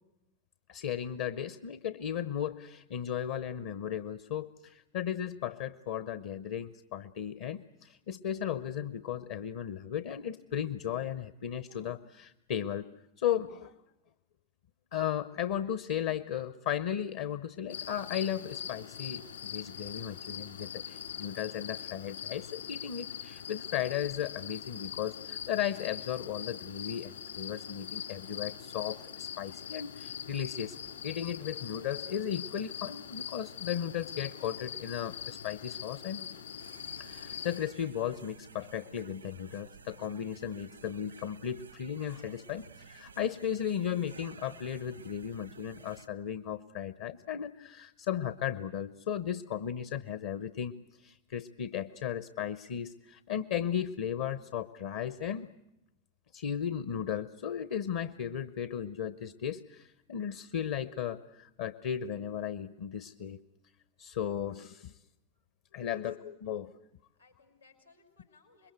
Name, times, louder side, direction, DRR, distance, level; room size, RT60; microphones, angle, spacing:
voice 1, 0.7-12.9 13.2-13.7 14.9-30.8 31.0-36.3 37.0-55.5 56.3-63.4 64.0-64.9 65.7-66.7, left 9 dB, 55° left, 14 dB, 0.8 m, -35 dB
sound 1, 17.7-37.6, left 9 dB, 70° left, 3.5 m, -42 dB
sound 2, 36.6-46.1, right 5 dB, 80° right, 0.9 m, -53 dB
voice 2, 67.1-68.7, left 4 dB, 85° left, 2 dB, 5.7 m, -62 dB
26.5 x 22.0 x 8.1 m, 0.89 s
figure-of-eight pair, 90°, 0 cm